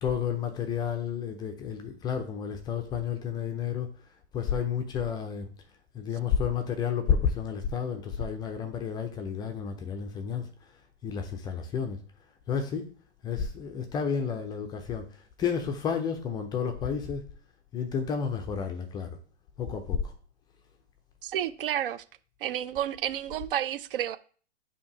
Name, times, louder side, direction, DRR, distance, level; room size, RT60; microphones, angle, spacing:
voice 1, 0.0-3.9 4.3-5.5 5.9-10.5 11.0-12.0 12.5-12.9 13.2-17.2 17.7-19.2 19.6-20.1, left 7 dB, 10° left, 0.4 m, -31 dB
voice 2, 21.2-22.0 22.4-24.2, right 11 dB, 50° right, 0.5 m, -30 dB
7.0 x 2.7 x 4.8 m
figure-of-eight pair, 115°, 35 cm